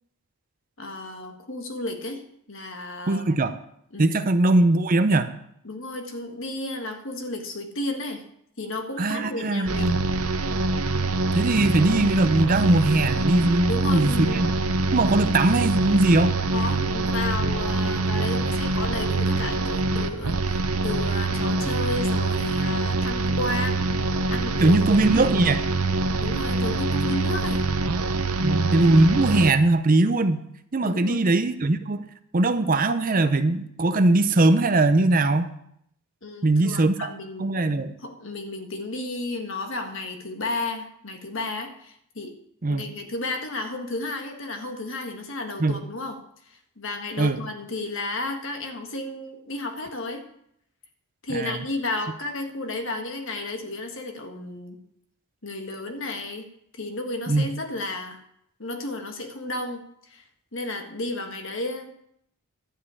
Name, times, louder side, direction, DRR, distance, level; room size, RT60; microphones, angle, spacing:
voice 1, 0.8-2.2 2.5-3.2 3.9-4.2 5.6-8.2 8.6-10.0 13.7-14.4 16.5-24.8 25.1-25.3 26.2-27.6 30.8-31.3 36.2-37.6 38.0-42.3 42.7-50.3 51.2-54.8 55.4-56.5 56.8-58.2 58.6-60.2 60.5-61.9, left 2 dB, 60° left, 5 dB, 1.5 m, -33 dB
voice 2, 3.1-3.5 4.0-5.3 9.0-10.0 11.3-14.5 14.9-16.3 24.6-25.6 28.4-30.4 30.7-32.0 32.3-35.5 36.4-37.1 37.4-37.9 42.6-42.8 45.6-45.8 47.2-47.4 51.3-51.6 57.3-57.5, right 2 dB, 40° right, 10 dB, 0.6 m, -20 dB
sound 1, 9.7-29.5, right 3 dB, 80° right, 0.8 m, -25 dB
12.0 x 5.6 x 8.3 m, 0.72 s
head